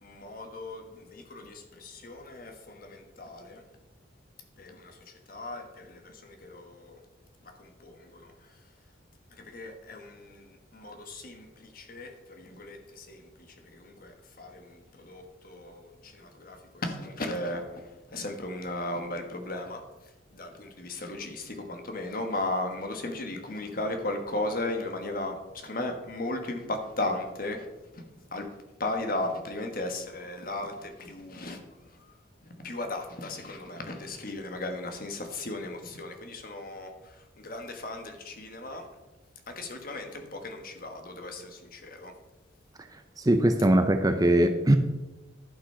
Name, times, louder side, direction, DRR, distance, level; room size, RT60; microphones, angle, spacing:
voice 1, 0.0-3.6 4.6-5.0 5.3-6.9 7.6-8.3 9.4-10.5 10.7-13.2 13.7-17.6 18.1-19.8 20.3-25.3 25.6-27.6 27.9-28.0 28.3-28.4 28.8-31.6 32.6-36.9 37.4-38.8 39.5-42.1, left 2 dB, 45° left, 4 dB, 1.4 m, -36 dB
voice 2, 43.2-44.8, right 1 dB, 20° right, 7 dB, 0.6 m, -21 dB
11.5 x 6.1 x 5.6 m, 1.1 s
head